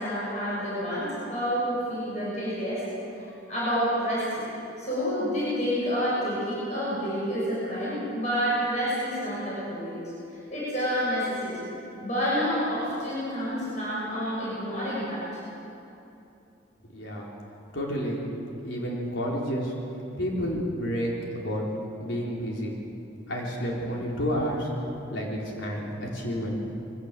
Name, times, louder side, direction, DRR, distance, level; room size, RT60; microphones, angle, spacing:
voice 1, 0.0-4.4 4.8-10.0 10.3-11.7 12.0-15.3, equal, 40° left, -8 dB, 6.8 m, -29 dB
voice 2, 16.9-17.3 17.7-18.2 18.6-19.7 20.2-21.6 22.0-22.7 23.3-24.7 25.1-26.6, equal, 80° left, -3 dB, 4.2 m, -30 dB
23.0 x 17.0 x 7.6 m, 2.8 s
head